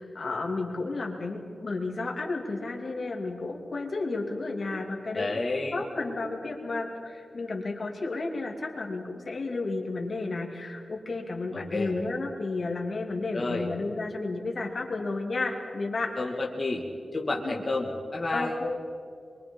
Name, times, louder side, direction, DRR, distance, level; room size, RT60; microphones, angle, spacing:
voice 1, 0.0-16.1 17.4-17.6 18.3-18.8, left 3 dB, 50° left, 1 dB, 2.7 m, -32 dB
voice 2, 5.1-5.8 11.5-11.9 13.3-13.7 16.2-16.8 17.1-18.6, left 2 dB, 30° left, -2 dB, 2.2 m, -30 dB
26.0 x 23.5 x 5.5 m, 2.3 s
wide cardioid pair, 140°, 0 cm